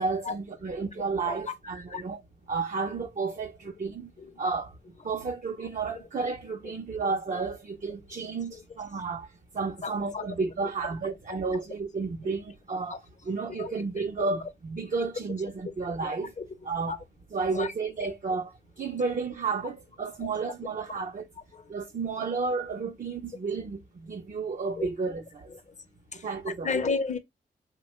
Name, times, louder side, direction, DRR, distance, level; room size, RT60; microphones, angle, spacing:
voice 1, 0.0-2.2 2.5-4.1 4.4-4.7 5.0-16.3 16.6-17.0 17.3-21.3 21.7-25.5 26.1-26.7, right 4 dB, 45° right, 0.6 m, -32 dB
voice 2, 9.8-10.3 12.9-13.0 13.6-13.7 16.0-16.4 16.9-17.0 17.5-17.7 21.5-21.6 24.8-24.9 26.1-26.2 26.6-27.2, left 4 dB, 40° left, 0.7 m, -31 dB
2.9 x 2.2 x 2.8 m
cardioid pair, 50°, 19 cm